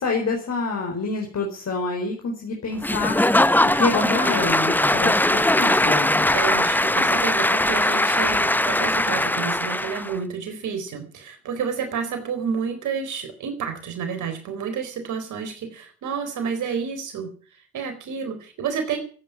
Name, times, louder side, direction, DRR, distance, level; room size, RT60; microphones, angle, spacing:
voice 1, 0.0-3.2 3.7-6.4, left 3 dB, 60° left, 2 dB, 4.7 m, -27 dB
Applause / Crowd, 2.8-10.1, left 1 dB, 5° left, 0.8 m, -20 dB
voice 2, 6.3-17.3 17.7-19.0, right 6 dB, 75° right, 7 dB, 4.1 m, -30 dB
14.0 x 9.1 x 9.7 m, 0.42 s
hypercardioid pair, 40°, 30 cm